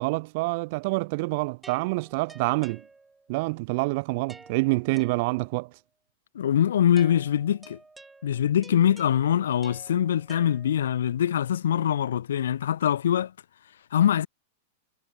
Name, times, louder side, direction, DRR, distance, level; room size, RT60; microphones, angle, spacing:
voice 1, 0.0-2.8 3.3-5.7, right 25 dB, 55° right, 1.2 m, -27 dB
sound 1, 1.6-3.4 4.3-5.7 7.0-11.1, right 3 dB, 10° right, 7.2 m, -51 dB
voice 2, 6.3-7.8 8.2-13.3 13.9-14.3, left 10 dB, 80° left, 1.6 m, -23 dB
hypercardioid pair, 110°, 0 cm